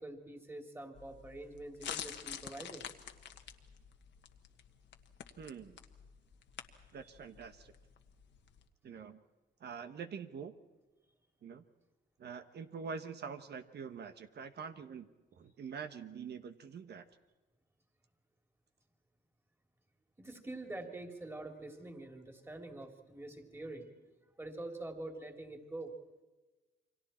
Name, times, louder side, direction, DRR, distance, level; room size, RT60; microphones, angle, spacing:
voice 1, 0.0-2.8 20.2-23.9 24.4-25.9, right 2 dB, 10° right, 4 dB, 3.1 m, -45 dB
sound 1, 0.9-8.6, left 8 dB, 65° left, 1.5 m, -48 dB
voice 2, 5.4-5.8 6.9-7.7 8.8-9.2 9.6-10.5 11.4-11.7 12.2-17.0, right 6 dB, 55° right, 9 dB, 1.3 m, -45 dB
29.0 x 24.0 x 4.4 m, 1.2 s
cardioid pair, 90°, 20 cm